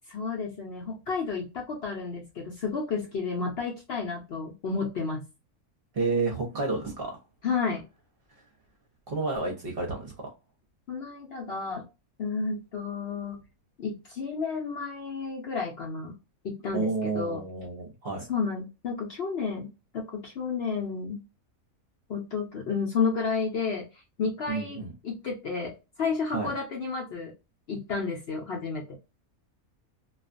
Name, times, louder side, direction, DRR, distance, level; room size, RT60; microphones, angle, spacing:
voice 1, 0.1-5.2 7.4-7.8 10.9-11.8 12.2-13.4 13.8-16.2 16.4-17.4 18.3-21.2 22.1-23.9 24.2-27.3 27.7-29.0, left 5 dB, 60° left, 0.7 m, -31 dB
voice 2, 5.9-7.2 9.1-10.1 16.7-18.2 24.5-24.9 26.3-26.5, right 3 dB, 50° right, 0.8 m, -30 dB
2.4 x 2.3 x 2.4 m
omnidirectional pair, 1.5 m